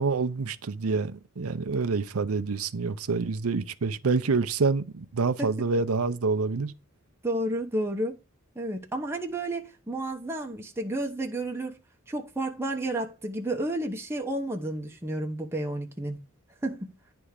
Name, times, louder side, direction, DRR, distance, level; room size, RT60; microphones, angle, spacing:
voice 1, 0.0-6.7, right 4 dB, 80° right, 0.6 m, -27 dB
voice 2, 7.2-8.2 8.5-11.8 12.1-16.2 16.6-16.9, right 1 dB, 10° right, 0.9 m, -31 dB
9.9 x 3.5 x 6.5 m
head